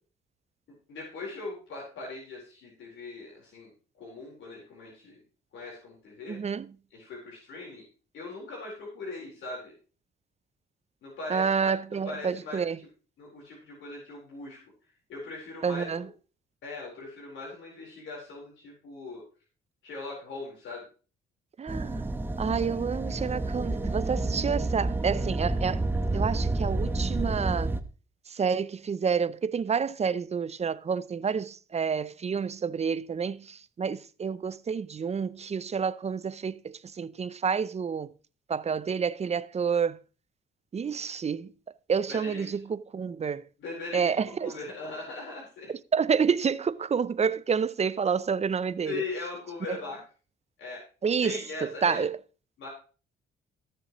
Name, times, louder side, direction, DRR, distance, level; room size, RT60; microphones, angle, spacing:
voice 1, 0.9-3.7 4.0-5.2 5.5-6.4 6.9-7.9 8.1-9.7 11.0-11.7 12.0-12.6 13.2-14.6 15.1-16.1 16.6-19.2 19.8-20.8 42.1-42.5 43.6-44.1 44.4-45.7 48.8-50.0 50.6-50.8 51.2-52.0 52.6-52.7, left 3 dB, 75° left, 4.3 m, -40 dB
voice 2, 6.3-6.7 11.3-12.8 15.6-16.1 21.6-22.1 22.4-25.8 26.1-27.7 28.3-38.1 38.5-40.0 40.7-41.5 41.9-43.5 43.9-44.6 45.9-49.0 49.7-49.8 51.0-52.2, right 6 dB, 35° right, 0.6 m, -29 dB
sound 1, 21.7-27.8, right 2 dB, 10° right, 0.9 m, -29 dB
17.0 x 6.9 x 3.1 m
cardioid pair, 90°, 20 cm